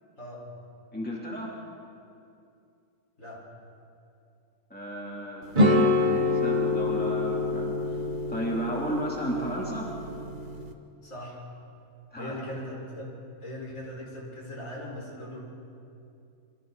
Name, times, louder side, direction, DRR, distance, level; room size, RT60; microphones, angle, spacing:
voice 1, 0.9-1.5 4.7-8.0 8.3-9.9 12.1-12.4, equal, 5° left, -4 dB, 3.2 m, -34 dB
sound 1, 5.5-10.7, left 2 dB, 35° right, 1.3 m, -26 dB
voice 2, 11.0-11.4 12.2-13.1 13.4-15.4, left 1 dB, 60° left, -4 dB, 5.3 m, -39 dB
27.5 x 25.0 x 4.1 m, 2.6 s
omnidirectional pair, 1.5 m